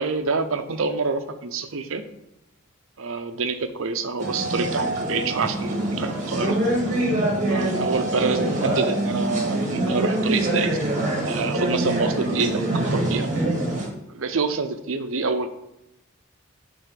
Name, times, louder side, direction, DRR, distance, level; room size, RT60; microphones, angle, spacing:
voice 1, 0.0-2.0 3.0-6.6 7.5-10.8 11.2-13.3 14.1-15.5, right 4 dB, 65° right, 8 dB, 0.6 m, -27 dB
sound 1, 4.2-13.9, right 1 dB, 35° right, 1.6 m, -24 dB
6.4 x 3.7 x 5.2 m, 0.87 s
head